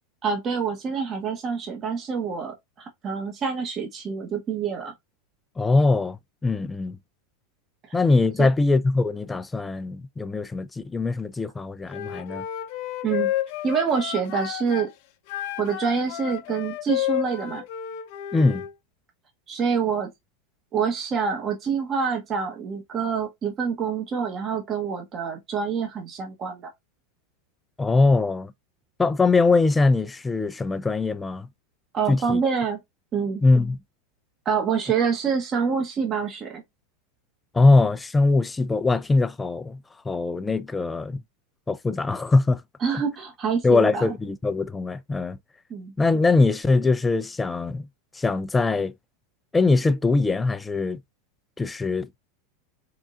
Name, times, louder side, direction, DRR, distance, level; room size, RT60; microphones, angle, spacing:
voice 1, 0.2-4.9 8.4-8.5 13.0-13.3 13.6-14.9 15.6-17.6 19.5-20.1 20.7-26.7 31.9-32.8 33.1-33.4 34.4-36.6 42.8-44.1 45.7-45.9, right 6 dB, 30° right, 1.0 m, -26 dB
voice 2, 5.6-6.2 6.4-7.0 7.9-12.4 18.3-18.6 27.8-28.5 29.0-31.5 32.1-32.4 33.4-33.8 37.5-39.8 40.1-41.2 41.7-42.6 43.6-45.4 46.0-47.9 48.2-48.9 49.5-51.0 51.6-52.1, left 3 dB, 10° left, 0.3 m, -22 dB
Wind instrument woodwind instrument, 11.9-14.9 15.3-18.7, left 12 dB, 60° left, 0.6 m, -31 dB
3.7 x 3.6 x 2.4 m
supercardioid pair, 125°, 0 cm